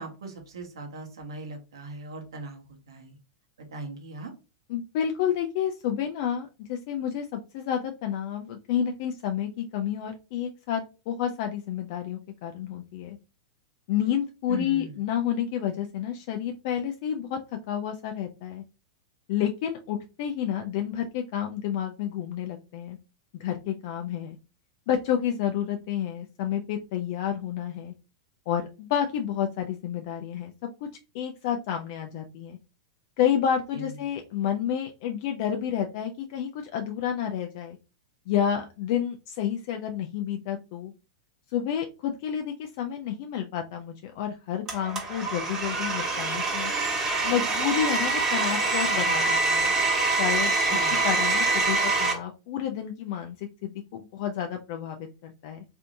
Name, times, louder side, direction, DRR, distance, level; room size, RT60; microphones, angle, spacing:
voice 1, 0.0-3.2 3.7-4.3 14.5-15.0 33.7-33.9 50.7-51.0, right 2 dB, 85° right, 3 dB, 1.0 m, -39 dB
voice 2, 4.7-13.2 13.9-17.4 17.7-18.6 19.3-23.0 23.3-24.4 24.9-27.9 28.5-30.5 30.8-30.9 31.1-32.6 33.2-37.8 38.3-40.9 41.5-46.7 47.2-49.7 50.0-50.8 51.0-55.6, left 9 dB, 55° left, 4 dB, 0.4 m, -30 dB
Domestic sounds home sounds, 44.7-52.1, right 3 dB, 20° right, 1.1 m, -25 dB
3.3 x 2.6 x 2.6 m, 0.32 s
hypercardioid pair, 125°, 2 cm